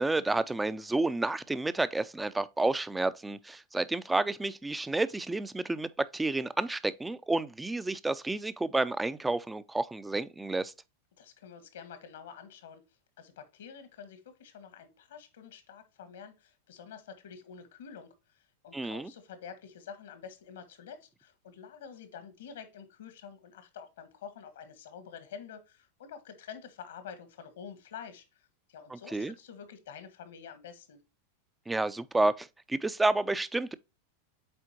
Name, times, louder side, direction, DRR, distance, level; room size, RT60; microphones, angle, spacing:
voice 1, 0.0-10.7 18.7-19.1 28.9-29.3 31.7-33.7, right 2 dB, 10° right, 0.5 m, -30 dB
voice 2, 11.2-12.8 13.2-31.0, left 7 dB, 75° left, 1.6 m, -48 dB
7.7 x 4.3 x 2.9 m
hypercardioid pair, 100°, 0 cm